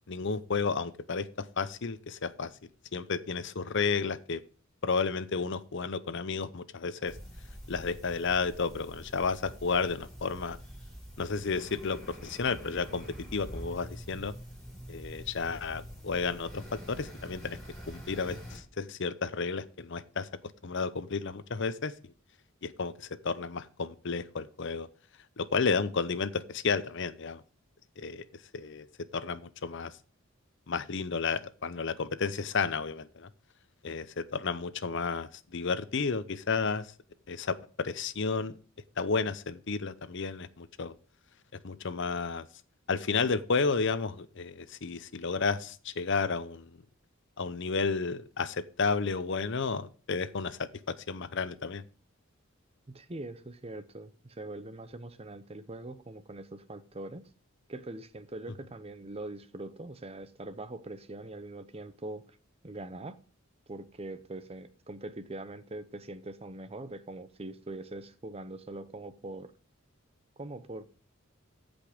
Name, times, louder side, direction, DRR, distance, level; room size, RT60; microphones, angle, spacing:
voice 1, 0.1-1.3 1.6-2.5 2.9-4.4 4.8-7.1 7.7-10.6 11.2-13.0 13.3-14.3 14.9-17.6 17.9-20.3 20.6-21.9 22.6-24.9 25.4-27.4 28.0-28.2 28.5-28.9 29.1-29.9 30.7-33.3 33.8-36.9 37.3-38.5 39.0-40.9 41.6-42.5 42.9-46.7 47.4-51.8, left 4 dB, 60° left, 0.7 m, -32 dB
sound 1, 7.0-18.6, equal, ahead, 5.3 m, -46 dB
voice 2, 52.9-57.2 57.7-62.2 62.6-63.2 63.7-69.5 70.4-70.9, right 2 dB, 30° right, 0.8 m, -42 dB
14.5 x 5.3 x 5.1 m
head